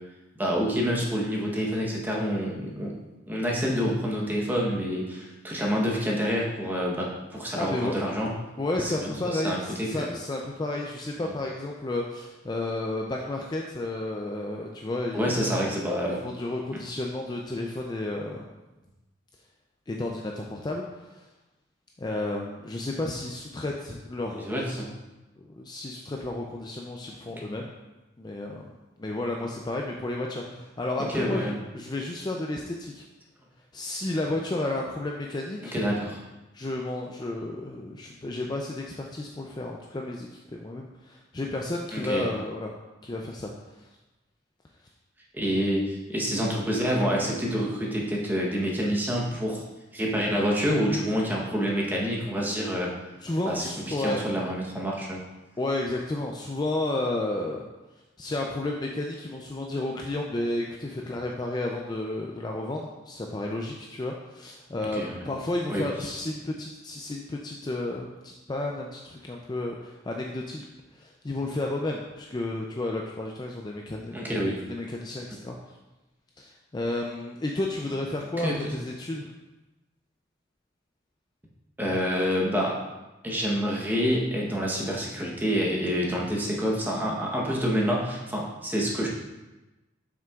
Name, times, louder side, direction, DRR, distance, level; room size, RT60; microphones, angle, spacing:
voice 1, 0.4-2.9 3.2-8.3 8.8-10.1 15.1-16.3 22.1-22.2 24.3-24.9 27.5-27.6 31.0-31.6 35.6-36.1 41.9-42.3 45.3-49.6 49.9-52.9 53.5-55.2 64.9-65.2 65.7-65.9 74.1-74.6 78.3-78.7 81.8-82.8 83.2-89.1, equal, 10° right, -3 dB, 0.9 m, -27 dB
voice 2, 7.5-7.9 8.6-15.3 16.2-18.4 19.9-21.3 22.0-24.8 25.4-27.7 28.2-28.7 29.0-33.0 33.7-35.7 36.5-42.7 43.0-43.9 53.2-54.2 55.6-57.7 58.2-70.6 70.9-75.8 76.4-79.3, left 2 dB, 20° left, 0 dB, 0.3 m, -32 dB
7.4 x 6.0 x 2.4 m, 1.1 s
head